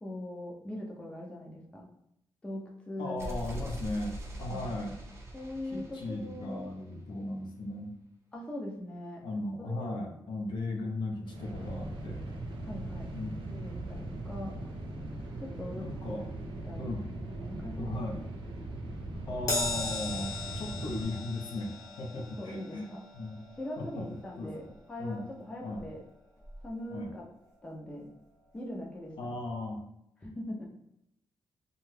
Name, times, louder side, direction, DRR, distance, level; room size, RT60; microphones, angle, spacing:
voice 1, 0.0-1.9 2.4-3.6 4.5-4.7 5.3-6.6 8.3-9.2 9.6-10.2 12.6-13.1 13.5-14.5 15.4-15.9 16.6-16.9 17.4-18.3 22.4-23.0 23.6-24.6 24.9-26.0 26.6-27.2 27.6-28.1 28.5-29.4 30.2-30.7, left 1 dB, 10° left, -2 dB, 0.4 m, -41 dB
voice 2, 3.0-5.0 5.7-7.9 9.2-12.2 13.1-13.3 14.5-14.6 15.7-16.2 16.8-17.0 17.8-18.2 19.3-23.4 23.8-24.0 24.4-24.7 25.0-25.3 25.6-25.9 26.9-27.1 29.2-29.8, left 2 dB, 65° left, 1 dB, 0.6 m, -37 dB
Solar Explosion, 3.2-7.0, equal, 30° right, 0.6 m, -42 dB
sound 1, 11.2-21.0, right 2 dB, 80° right, 0.6 m, -40 dB
Crash cymbal, 19.5-26.1 26.4-26.7 27.7-27.8, left 2 dB, 40° left, 0.9 m, -39 dB
2.6 x 2.2 x 3.2 m, 0.78 s
wide cardioid pair, 150°, 9 cm